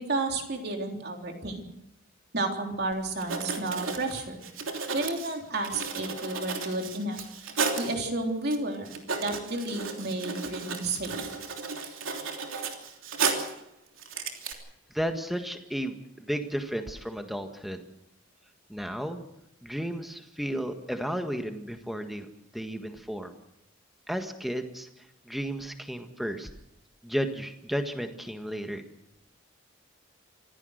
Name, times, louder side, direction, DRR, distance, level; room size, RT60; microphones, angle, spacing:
voice 1, 0.0-1.6 2.3-4.4 4.9-7.2 7.8-8.9 9.2-11.3, right 2 dB, 50° right, 2 dB, 3.6 m, -31 dB
Writing, 3.2-7.9 8.5-8.6 8.9-13.6 14.0-14.5, right 5 dB, 80° right, 3.2 m, -33 dB
voice 2, 14.9-17.8 18.7-19.2 19.6-22.3 22.5-23.3 24.1-26.5 27.0-28.8, equal, ahead, 6 dB, 1.7 m, -33 dB
26.5 x 15.5 x 6.6 m, 0.83 s
head